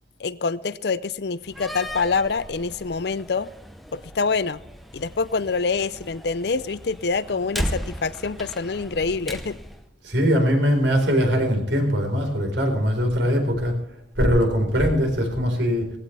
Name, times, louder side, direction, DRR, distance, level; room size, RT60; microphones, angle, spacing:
voice 1, 0.2-3.5 3.9-4.6 4.9-9.6, left 4 dB, 60° left, 16 dB, 0.5 m, -26 dB
Slam, 1.4-9.8, equal, ahead, 0.9 m, -36 dB
voice 2, 10.0-13.8 14.2-15.9, equal, 75° right, 3 dB, 4.4 m, -21 dB
18.5 x 15.5 x 3.4 m, 0.78 s
head